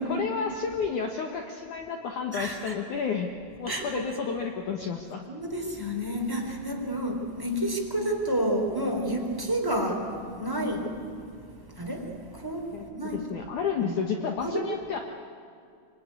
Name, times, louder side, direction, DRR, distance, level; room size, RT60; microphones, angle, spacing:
voice 1, 0.0-3.3 3.6-5.2 12.7-12.8 13.1-15.0, left 6 dB, 60° left, 3 dB, 2.3 m, -31 dB
voice 2, 2.3-2.8 3.7-4.1 5.3-10.1 10.4-10.9 11.8-12.1 12.3-13.3 13.8-13.9 14.4-14.6, right 1 dB, 5° right, 1 dB, 3.0 m, -30 dB
25.5 x 24.0 x 9.6 m, 2.4 s
omnidirectional pair, 4.7 m